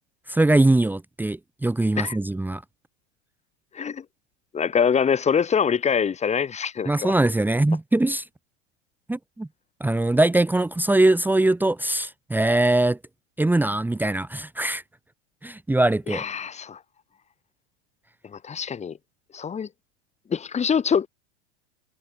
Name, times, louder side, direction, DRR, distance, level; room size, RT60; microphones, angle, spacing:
voice 1, 0.3-2.6 6.9-8.2 9.1-9.5 9.8-13.0 13.4-14.8 15.4-16.2, right 2 dB, 5° right, 1.6 m, -21 dB
voice 2, 4.5-7.1 16.1-16.8 18.3-19.0 19.3-19.7 20.3-21.1, left 7 dB, 20° left, 2.5 m, -24 dB
hypercardioid pair, 125°, 36 cm